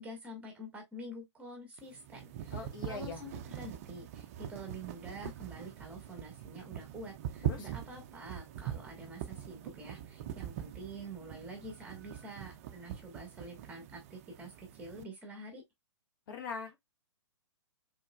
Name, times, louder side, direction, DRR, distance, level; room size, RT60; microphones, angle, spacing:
voice 1, 0.0-15.6, right 1 dB, 10° right, 1.3 m, -47 dB
sound 1, 1.8-15.0, right 10 dB, 30° right, 0.4 m, -43 dB
voice 2, 2.5-3.2 7.4-7.7 16.3-16.9, left 5 dB, 45° left, 1.1 m, -42 dB
4.5 x 3.7 x 2.3 m
figure-of-eight pair, 120°, 15 cm